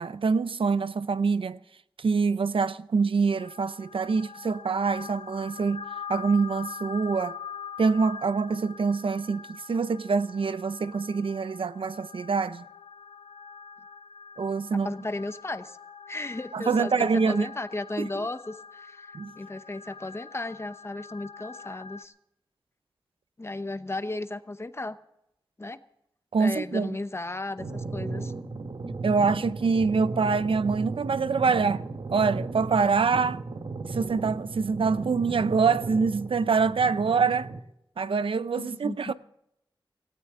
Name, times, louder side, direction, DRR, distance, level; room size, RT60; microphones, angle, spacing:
voice 1, 0.0-1.6 2.0-5.8 6.1-7.4 7.8-12.6 14.4-14.9 16.5-17.5 18.0-18.3 19.1-19.3 26.3-27.0 29.0-31.8 32.1-33.4 33.9-37.5 38.0-39.1, right 5 dB, 85° right, 0.6 m, -25 dB
sound 1, 3.4-22.0, left 6 dB, 75° left, 0.8 m, -44 dB
voice 2, 14.8-15.8 16.1-19.1 19.4-22.1 23.4-25.0 25.6-25.8 26.4-28.3 38.6-39.1, left 2 dB, 30° left, 0.8 m, -35 dB
sound 2, 27.6-37.6, right 3 dB, 65° right, 1.2 m, -35 dB
18.0 x 16.5 x 3.7 m
wide cardioid pair, 90°, 9 cm